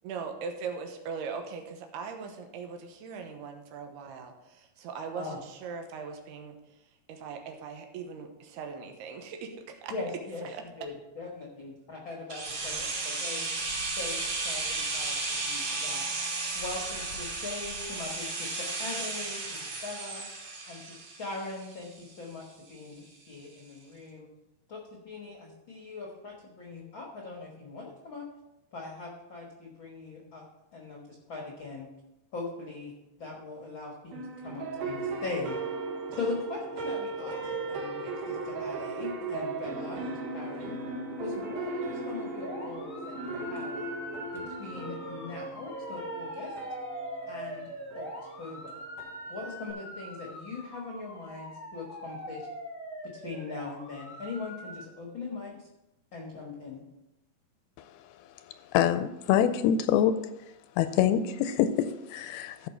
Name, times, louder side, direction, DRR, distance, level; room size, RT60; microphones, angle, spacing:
voice 1, 0.0-9.9 10.4-10.9, right 5 dB, 85° right, 5 dB, 3.1 m, -40 dB
voice 2, 9.9-10.5 10.8-13.5 14.0-16.1 16.5-20.3 20.6-24.3 24.7-28.3 28.7-30.4 30.7-31.0 31.3-31.9 32.3-32.9 33.2-35.6 36.2-37.4 37.7-40.8 41.2-43.8 44.3-46.5 47.3-47.7 47.9-48.1 48.4-48.8 49.3-52.5 53.1-55.6 56.1-56.8, left 3 dB, 60° left, -1 dB, 1.3 m, -40 dB
sound 1, 12.3-22.1 22.4-22.5, right 3 dB, 45° right, 2.7 m, -34 dB
sound 2, 34.1-49.7, right 3 dB, 60° right, 2.7 m, -37 dB
sound 3, 42.4-54.8, equal, 5° left, 1.2 m, -42 dB
voice 3, 58.7-60.2 60.8-62.7, left 10 dB, 80° left, 11 dB, 2.3 m, -25 dB
14.5 x 5.7 x 4.5 m, 0.93 s
omnidirectional pair, 4.5 m